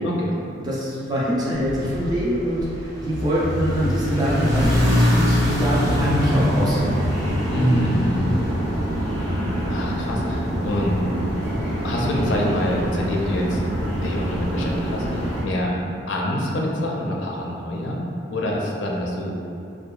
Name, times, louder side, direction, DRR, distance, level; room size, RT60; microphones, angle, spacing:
voice 1, 0.0-0.3 7.5-8.3 9.7-11.0 11.8-13.6 14.0-15.0 15.4-15.7 16.1-18.0 18.3-19.3, equal, 75° left, -2 dB, 0.4 m, -25 dB
voice 2, 0.6-7.1, equal, 20° right, -7 dB, 0.4 m, -24 dB
sound 1, 1.6-9.9, equal, 85° right, 1.3 m, -24 dB
sound 2, 5.4-15.4, equal, 55° right, 0.7 m, -26 dB
2.7 x 2.2 x 2.3 m, 2.5 s
head